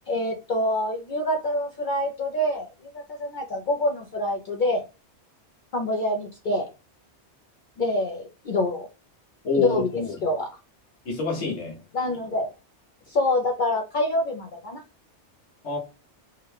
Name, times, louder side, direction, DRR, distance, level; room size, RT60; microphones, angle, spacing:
voice 1, 0.1-4.8 5.7-6.7 7.8-8.9 9.5-10.5 11.9-12.5 13.1-14.8, left 1 dB, 55° left, 0.6 m, -26 dB
voice 2, 9.4-10.2 11.0-11.8 15.6-15.8, left 4 dB, 80° left, 1.2 m, -27 dB
3.5 x 2.2 x 3.2 m
omnidirectional pair, 1.2 m